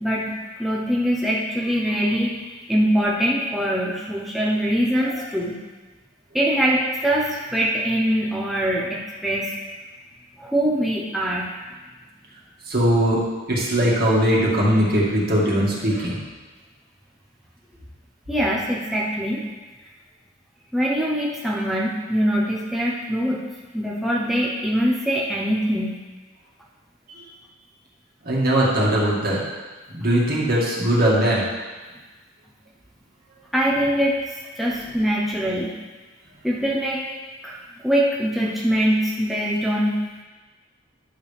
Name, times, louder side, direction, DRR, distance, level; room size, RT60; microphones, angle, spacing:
voice 1, 0.0-2.4 2.7-5.6 6.3-9.5 10.4-11.5 18.3-19.4 20.7-23.4 23.7-25.9 33.5-35.7 36.4-37.0 37.4-40.1, equal, ahead, -5 dB, 0.8 m, -23 dB
voice 2, 12.7-16.2 28.2-29.4 29.9-31.4, right 1 dB, 55° right, -5 dB, 2.2 m, -20 dB
11.0 x 6.7 x 3.5 m, 1.3 s
head